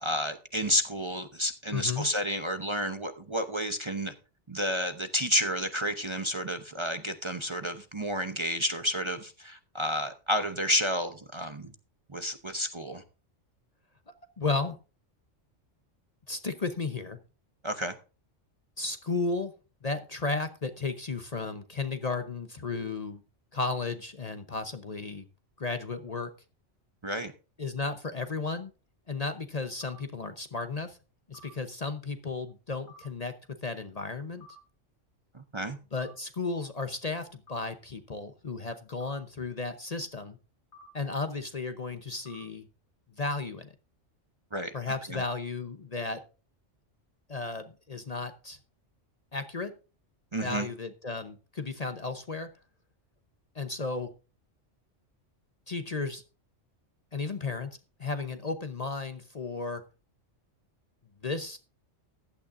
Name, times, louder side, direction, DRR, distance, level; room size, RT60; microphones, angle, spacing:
voice 1, 0.0-4.1 4.5-11.7 12.1-13.0 17.6-18.0 27.0-27.3 35.3-35.8 44.5-44.7 45.1-45.2 50.3-50.7, equal, 25° right, 0.8 m, -31 dB
voice 2, 1.7-2.1 14.4-14.8 16.3-17.2 18.8-19.5 19.8-23.2 23.5-25.3 25.6-26.3 27.6-28.7 29.1-31.0 31.3-33.3 33.6-34.5 35.9-40.4 40.9-42.7 43.2-43.7 44.7-46.2 47.3-48.6 49.3-49.7 50.4-52.5 53.5-54.1 55.7-56.2 57.1-57.7 58.0-59.8 61.2-61.6, left 3 dB, 35° left, 0.9 m, -34 dB
sound 1, 29.8-30.0 31.3-31.5 32.9-33.0 34.4-34.6 35.9-36.1 37.5-37.6 39.0-39.2 40.7-40.9 42.3-42.4, left 5 dB, 65° left, 3.8 m, -51 dB
15.5 x 11.5 x 2.6 m
omnidirectional pair, 1.2 m